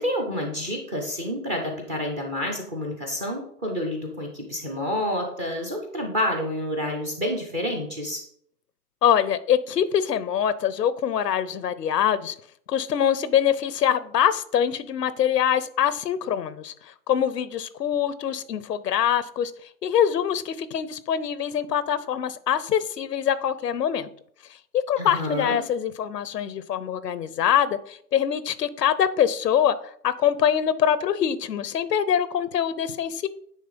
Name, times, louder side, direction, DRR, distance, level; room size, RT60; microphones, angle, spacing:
voice 1, 0.0-8.2 25.0-25.6, left 1 dB, 10° right, 2 dB, 0.3 m, -29 dB
voice 2, 9.0-12.4 12.7-19.5 19.8-24.1 24.7-33.3, left 9 dB, 85° left, 15 dB, 0.8 m, -24 dB
9.4 x 3.2 x 5.2 m, 0.64 s
hypercardioid pair, 125°, 47 cm